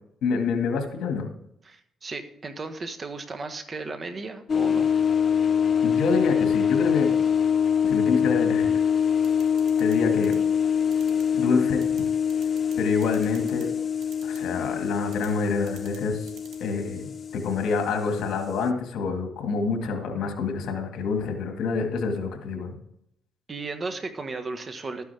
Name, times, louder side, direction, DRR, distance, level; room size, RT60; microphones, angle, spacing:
voice 1, 0.2-1.3 5.8-7.1 7.8-8.8 9.8-10.4 11.3-11.8 12.8-13.7 14.2-16.3 16.6-22.7, left 4 dB, 80° left, 4 dB, 2.0 m, -27 dB
voice 2, 1.6-4.9 23.5-25.0, right 3 dB, 35° right, 7 dB, 1.4 m, -35 dB
sound 1, 4.5-18.7, left 7 dB, 45° left, 0.6 m, -24 dB
sound 2, 9.2-9.9 10.2-10.4 10.9-11.2 11.8-12.0 12.3-12.7 13.0-13.6 14.0-14.4 15.1-15.3 15.7-16.0 16.3-16.6, right 10 dB, 85° right, 2.0 m, -48 dB
12.5 x 9.4 x 3.5 m, 0.75 s
cardioid pair, 90°, 0 cm